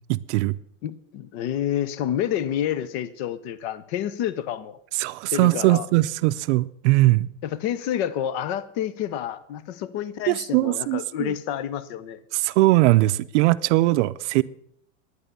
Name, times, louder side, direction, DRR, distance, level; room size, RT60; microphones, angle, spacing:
voice 1, 0.1-0.6 4.9-7.3 10.3-11.3 12.3-14.4, right 19 dB, 60° right, 14 dB, 0.5 m, -20 dB
voice 2, 0.8-4.8 5.3-5.9 7.4-12.2, left 10 dB, 55° left, 16 dB, 0.9 m, -29 dB
11.0 x 9.8 x 6.8 m, 0.69 s
supercardioid pair, 135°, 39 cm